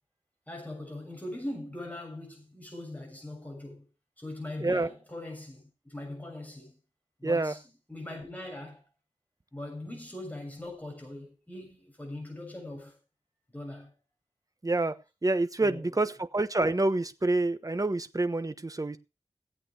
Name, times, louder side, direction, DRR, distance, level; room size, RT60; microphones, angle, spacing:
voice 1, 0.5-3.9 4.2-6.8 7.2-7.6 7.9-8.8 9.5-13.0 13.5-13.9 15.6-16.1, left 1 dB, 15° left, 7.1 m, -41 dB
voice 2, 7.2-7.5 14.6-15.0 15.2-19.0, right 2 dB, 30° right, 1.1 m, -27 dB
16.5 x 8.6 x 4.8 m
wide cardioid pair, 80°, 11 cm